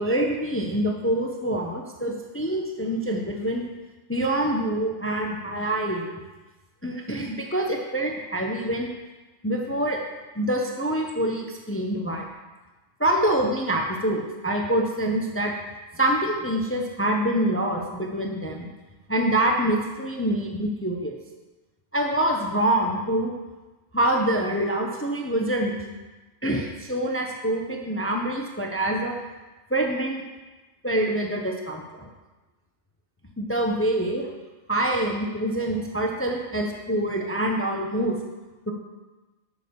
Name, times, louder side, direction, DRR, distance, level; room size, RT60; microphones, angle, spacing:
voice 1, 0.0-3.6 4.1-6.1 6.8-8.9 9.4-10.0 10.4-12.2 13.0-15.5 16.0-18.7 19.1-21.2 21.9-23.3 23.9-25.8 26.4-29.1 29.7-30.2 30.8-32.1 33.4-34.3 34.7-38.2 38.7-38.8, right 1 dB, 10° left, 1 dB, 0.8 m, -25 dB
12.0 x 6.9 x 5.4 m, 1.2 s
omnidirectional pair, 1.3 m